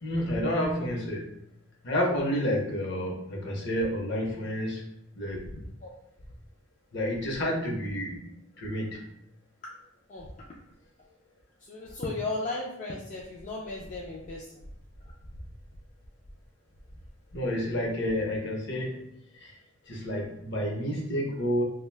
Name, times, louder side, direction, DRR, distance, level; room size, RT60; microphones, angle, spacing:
voice 1, 0.0-1.4 1.8-5.6 6.9-8.3 8.6-9.1 17.3-19.1 19.3-19.6 19.9-21.6, equal, 55° left, -2 dB, 0.8 m, -30 dB
voice 2, 11.7-14.5, left 2 dB, 35° left, -5 dB, 0.4 m, -35 dB
2.4 x 2.2 x 3.2 m, 0.76 s
head